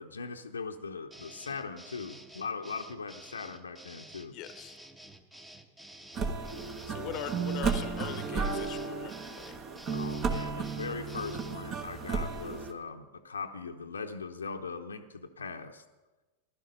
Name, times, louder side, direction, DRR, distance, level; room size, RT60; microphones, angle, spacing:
voice 1, 0.0-4.4 7.0-7.3 9.9-15.8, left 5 dB, 75° left, 4 dB, 0.9 m, -40 dB
sound 1, 1.1-11.6, right 1 dB, 10° right, 1.2 m, -51 dB
voice 2, 4.3-4.8 6.9-9.6, left 11 dB, 40° left, 12 dB, 1.0 m, -42 dB
sound 2, 6.1-12.7, right 5 dB, 30° right, 1.3 m, -33 dB
16.0 x 12.0 x 5.4 m, 1.2 s
figure-of-eight pair, 90°, 0 cm